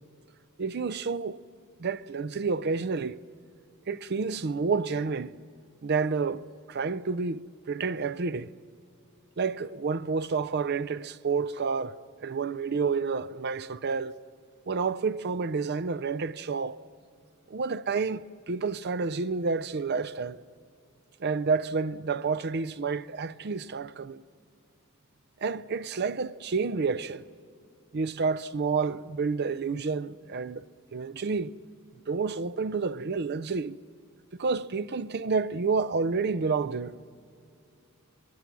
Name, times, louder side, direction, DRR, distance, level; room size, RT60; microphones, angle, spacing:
voice 1, 0.6-1.4 1.8-3.2 3.9-5.3 5.8-8.5 9.4-12.0 12.2-14.2 14.7-16.8 17.5-20.4 21.2-24.2 25.4-27.2 27.9-30.7 30.9-31.6 32.1-33.8 34.4-36.9, right 4 dB, 50° right, 0.5 m, -29 dB
27.5 x 22.0 x 6.1 m
head